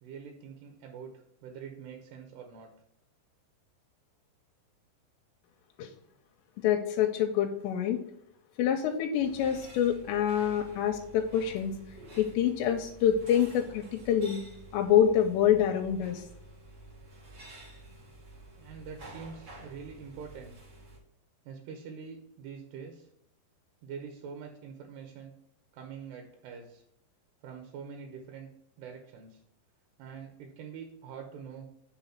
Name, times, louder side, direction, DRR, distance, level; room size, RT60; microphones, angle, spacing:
voice 1, 0.0-2.7 18.6-20.6 21.5-23.1 23.8-25.3 25.7-26.8 27.4-28.5 28.8-29.4 30.0-31.7, right 6 dB, 80° right, 4 dB, 2.8 m, -45 dB
voice 2, 6.6-8.0 8.6-11.7 12.2-14.4 14.7-16.2, left 9 dB, 85° left, 4 dB, 2.8 m, -26 dB
sound 1, 9.2-21.0, right 1 dB, 40° right, 1.5 m, -50 dB
6.1 x 4.0 x 5.7 m, 0.76 s
omnidirectional pair, 5.0 m